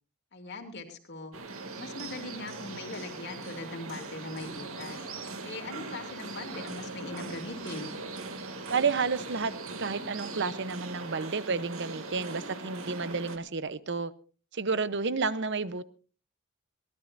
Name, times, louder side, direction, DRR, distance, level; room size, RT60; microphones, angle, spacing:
voice 1, 0.3-1.3 1.8-5.1 5.4-7.9, left 2 dB, 50° left, 2.8 m, -40 dB
sound 1, 1.3-13.4, right 3 dB, 70° right, 2.4 m, -40 dB
voice 2, 8.7-9.5 9.8-14.1 14.5-15.8, right 4 dB, 55° right, 0.8 m, -31 dB
23.0 x 18.0 x 2.6 m
head